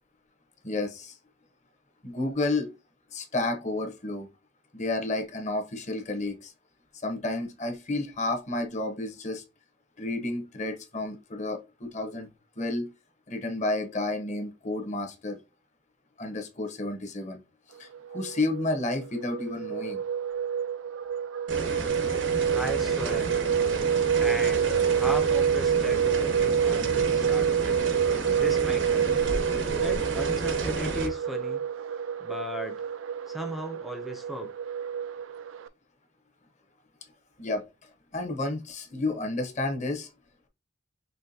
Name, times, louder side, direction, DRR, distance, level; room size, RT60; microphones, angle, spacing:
voice 1, 0.6-1.2 2.0-2.7 3.1-4.3 4.7-6.5 6.9-9.4 10.0-12.3 12.6-12.9 13.3-15.4 16.2-17.4 17.8-20.0 37.4-40.1, left 2 dB, 40° left, 1.0 m, -31 dB
sound 1, 17.9-35.7, right 8 dB, 90° right, 0.4 m, -27 dB
sound 2, 21.5-31.1, right 3 dB, 75° right, 0.9 m, -32 dB
voice 2, 22.5-23.3 24.2-27.8 28.3-29.1 29.8-31.6 32.2-32.8 33.3-34.5, equal, ahead, 0.6 m, -36 dB
5.6 x 3.1 x 2.8 m
head